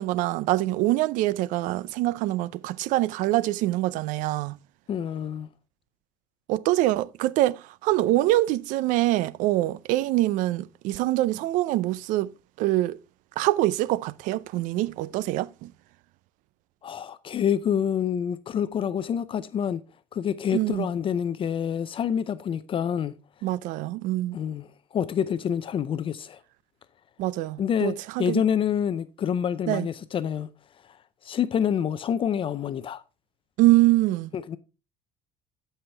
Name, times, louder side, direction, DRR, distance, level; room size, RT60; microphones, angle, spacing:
voice 1, 0.0-4.6 6.5-12.3 12.6-13.0 13.4-15.7 20.5-20.9 23.4-24.4 27.2-28.4 29.7-29.9 33.6-34.3, right 16 dB, 70° right, 0.5 m, -24 dB
voice 2, 4.9-5.5 16.8-19.8 20.1-23.1 24.3-26.4 27.6-30.5 31.2-33.0 34.3-34.6, left 8 dB, 40° left, 0.5 m, -27 dB
12.0 x 5.7 x 3.4 m
supercardioid pair, 105°, 14 cm